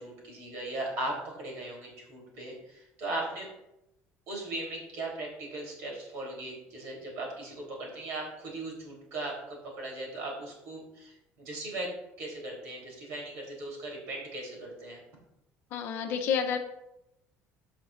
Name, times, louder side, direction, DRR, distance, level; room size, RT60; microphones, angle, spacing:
voice 1, 0.0-3.5 4.3-15.0, right 2 dB, 60° right, -1 dB, 3.6 m, -38 dB
voice 2, 15.7-16.6, left 7 dB, 50° left, 4 dB, 0.8 m, -29 dB
15.0 x 6.0 x 2.6 m, 0.87 s
cardioid pair, 180°, 5 cm